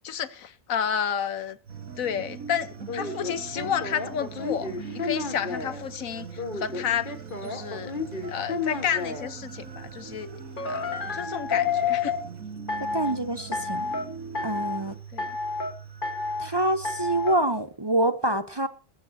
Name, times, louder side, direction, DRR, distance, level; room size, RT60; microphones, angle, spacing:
voice 1, 0.0-1.6 2.0-7.1 7.4-7.9 8.3-10.3 10.6-12.1 15.1-15.4, left 8 dB, 80° left, 1.4 m, -31 dB
sound 1, 1.7-17.3, right 8 dB, 70° right, 1.7 m, -45 dB
sound 2, 1.7-15.0, right 4 dB, 90° right, 1.9 m, -43 dB
sound 3, 2.9-5.8 6.4-9.3 10.6-12.2 12.7-13.2 13.5-14.0 14.3-14.8 15.2-15.7 16.0-16.5 16.8-17.4, left 5 dB, 40° left, 1.7 m, -30 dB
voice 2, 12.9-13.8 14.4-14.9 16.4-18.7, right 1 dB, 25° right, 0.7 m, -26 dB
20.0 x 14.5 x 2.8 m
omnidirectional pair, 1.4 m